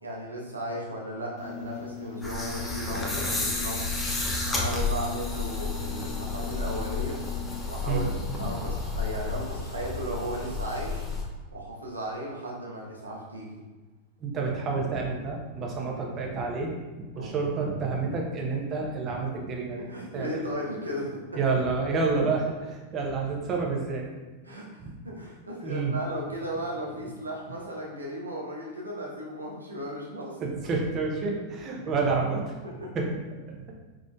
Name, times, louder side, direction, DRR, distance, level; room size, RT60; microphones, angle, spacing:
voice 1, 0.0-7.3 7.7-13.6 17.1-17.3 19.6-21.4 24.4-30.4 32.6-33.0, right 1 dB, 85° right, -4 dB, 0.9 m, -36 dB
sound 1, 1.4-7.6, left 9 dB, 40° left, 0.4 m, -41 dB
sound 2, 2.2-11.2, left 3 dB, 15° left, 0.7 m, -31 dB
voice 2, 14.2-16.7 17.0-19.9 20.1-20.5 21.3-24.0 24.8-24.9 25.6-25.9 30.4-32.4 32.9-33.0 33.5-33.6, right 4 dB, 30° right, -1 dB, 0.8 m, -29 dB
5.1 x 3.7 x 2.3 m, 1.2 s
figure-of-eight pair, 90°, 0 cm